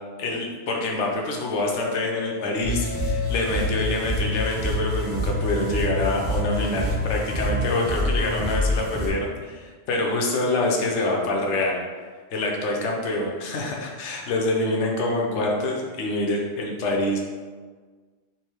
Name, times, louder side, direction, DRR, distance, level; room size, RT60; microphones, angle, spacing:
voice 1, 0.2-11.8 12.3-17.2, left 2 dB, 75° left, 0 dB, 1.0 m, -26 dB
sound 1, 1.5-5.6, left 7 dB, 50° left, 0.7 m, -37 dB
sound 2, 2.6-9.1, left 1 dB, 10° left, 0.7 m, -26 dB
3.3 x 3.1 x 4.5 m, 1.5 s
omnidirectional pair, 1.2 m